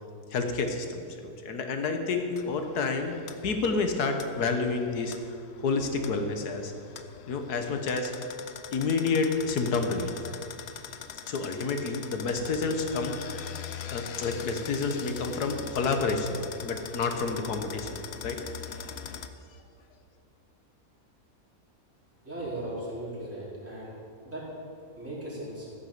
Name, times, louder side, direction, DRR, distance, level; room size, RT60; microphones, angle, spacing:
voice 1, 0.3-3.2 3.4-5.1 5.6-6.7 7.3-8.1 8.7-10.2 11.3-13.6 13.9-18.4, left 4 dB, 85° left, 5 dB, 1.7 m, -29 dB
sound 1, 2.4-19.3, left 8 dB, 60° left, 0.7 m, -42 dB
voice 2, 22.2-23.9 24.2-24.4 25.0-25.6, right 1 dB, 10° right, -8 dB, 4.0 m, -37 dB
14.5 x 7.2 x 7.3 m, 2.4 s
omnidirectional pair, 1.6 m